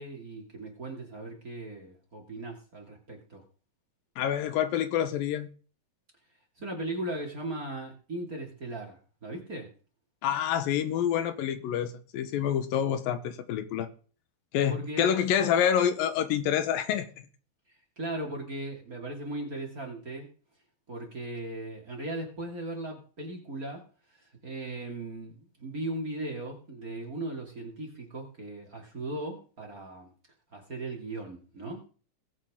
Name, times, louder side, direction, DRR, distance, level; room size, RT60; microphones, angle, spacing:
voice 1, 0.0-3.4 6.6-9.7 14.7-15.1 15.4-15.5 17.7-20.3 20.9-23.8 24.1-30.1 30.5-31.9, right 2 dB, 25° right, 2.5 m, -38 dB
voice 2, 4.2-5.5 10.2-13.9 14.5-17.1, left 9 dB, 85° left, 2.8 m, -27 dB
20.5 x 7.7 x 3.7 m
omnidirectional pair, 4.0 m